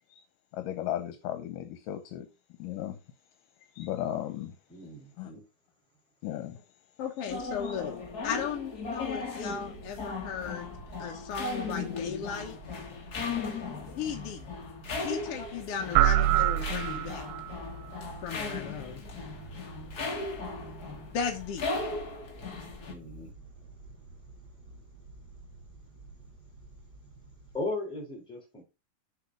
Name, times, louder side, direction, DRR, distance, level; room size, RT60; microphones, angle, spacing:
voice 1, 0.5-2.3 2.6-3.0 3.7-4.6 5.2-5.3 6.2-6.6 7.6-7.8 11.1-11.2, left 12 dB, 80° left, 2.5 m, -35 dB
voice 2, 4.7-5.4 22.9-23.3 27.5-28.6, left 2 dB, ahead, 3.0 m, -37 dB
voice 3, 7.0-8.0 8.2-10.7 11.0-12.6 14.0-14.5 15.0-17.3 18.2-19.0 21.1-21.7, left 7 dB, 60° left, 1.6 m, -36 dB
sound 1, 7.2-22.9, left 3 dB, 40° left, 1.5 m, -37 dB
sound 2, 9.3-27.7, right 3 dB, 65° right, 1.0 m, -50 dB
sound 3, 15.9-17.5, right 14 dB, 80° right, 2.1 m, -25 dB
7.1 x 4.9 x 6.3 m
omnidirectional pair, 3.9 m